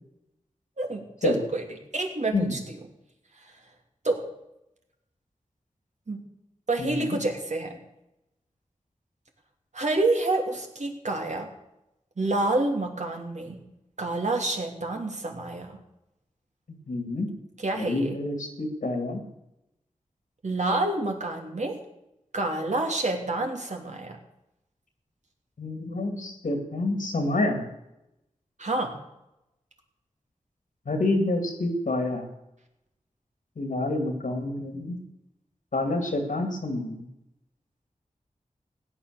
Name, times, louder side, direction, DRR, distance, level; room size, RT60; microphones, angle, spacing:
voice 1, 0.8-1.7 1.9-2.8 4.0-4.2 6.1-6.2 6.7-7.8 9.7-11.5 12.2-13.6 14.0-15.8 17.6-18.2 20.4-21.8 22.3-24.2 28.6-28.9, right 2 dB, 60° right, 2 dB, 3.0 m, -28 dB
voice 2, 6.8-7.2 16.9-17.3 17.8-19.2 25.6-27.6 30.9-32.3 33.6-35.0 35.7-37.0, left 2 dB, 80° left, 5 dB, 2.6 m, -28 dB
16.0 x 9.9 x 6.8 m, 0.87 s
cardioid pair, 50°, 14 cm